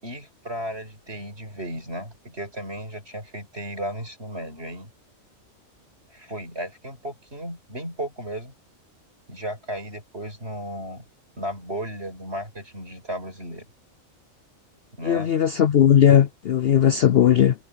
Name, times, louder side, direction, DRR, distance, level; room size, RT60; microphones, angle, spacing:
voice 1, 0.0-4.9 6.1-8.5 9.3-11.1 11.4-13.7 15.0-15.3, equal, 45° right, 8.0 m, -34 dB
voice 2, 15.1-17.5, left 9 dB, 60° left, 0.7 m, -17 dB
omnidirectional pair, 1.4 m